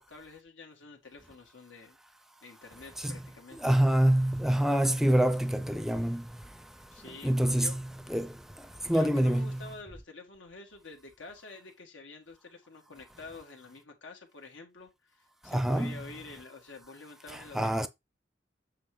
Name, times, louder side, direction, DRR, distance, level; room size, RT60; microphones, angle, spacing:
voice 1, 0.0-2.0 2.4-3.6 6.9-7.8 8.9-17.9, left 3 dB, 85° left, 1.7 m, -48 dB
voice 2, 3.6-6.2 7.2-7.8 8.1-8.3 8.9-9.6 15.5-16.0 17.5-17.9, right 1 dB, ahead, 0.5 m, -25 dB
7.6 x 3.1 x 4.8 m
head